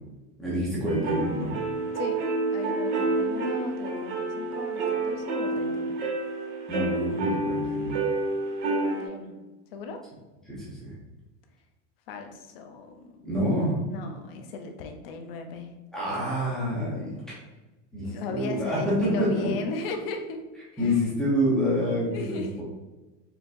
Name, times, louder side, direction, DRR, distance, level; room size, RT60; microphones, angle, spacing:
voice 1, 0.4-1.5 6.7-8.0 10.5-11.0 13.2-13.8 15.9-17.2 17.9-19.5 20.8-22.6, equal, ahead, -8 dB, 0.8 m, -27 dB
sound 1, 0.8-9.0, right 3 dB, 65° right, 1.3 m, -29 dB
voice 2, 2.5-6.0 8.6-9.3 9.7-10.0 12.1-13.2 13.8-15.7 18.0-20.5 20.7-21.1 22.1-22.6, left 3 dB, 50° left, 5 dB, 0.6 m, -37 dB
4.4 x 3.7 x 2.5 m, 1.1 s
supercardioid pair, 180°, 36 cm